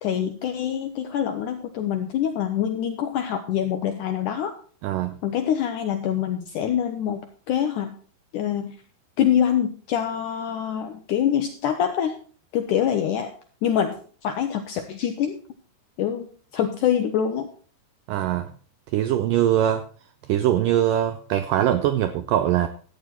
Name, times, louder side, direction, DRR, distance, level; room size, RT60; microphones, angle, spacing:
voice 1, 0.0-4.5 5.2-7.9 8.3-8.8 9.2-12.1 12.5-13.3 13.6-14.0 14.2-15.4 16.0-16.3 16.5-17.5, left 9 dB, 80° left, 6 dB, 1.8 m, -25 dB
voice 2, 4.8-5.2 18.1-18.5 18.9-19.8 20.3-22.7, right 11 dB, 85° right, 10 dB, 1.9 m, -22 dB
13.5 x 9.0 x 4.3 m, 0.43 s
omnidirectional pair, 4.6 m